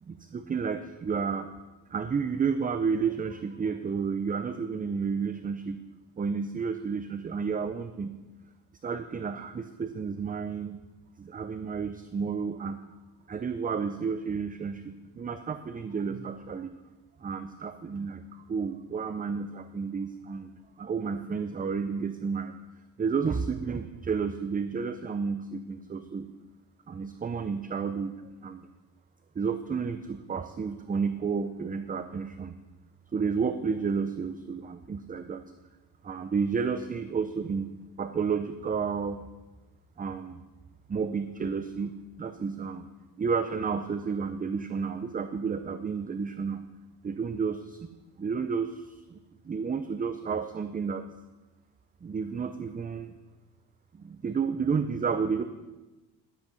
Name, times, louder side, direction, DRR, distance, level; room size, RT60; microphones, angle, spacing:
voice 1, 0.0-1.5 1.9-5.8 6.2-8.1 8.8-10.8 11.2-12.8 13.3-16.7 17.2-20.5 20.8-22.5 23.0-26.3 26.9-28.7 29.4-32.5 33.1-35.4 36.0-37.7 38.0-39.3 40.0-40.4 40.9-41.9 42.2-42.8 43.2-46.6 47.0-47.9 48.2-49.2 49.5-51.1 52.0-53.1 53.9-55.4, right 5 dB, 20° right, 9 dB, 0.6 m, -31 dB
12.0 x 8.1 x 5.2 m, 1.1 s
supercardioid pair, 85°, 42 cm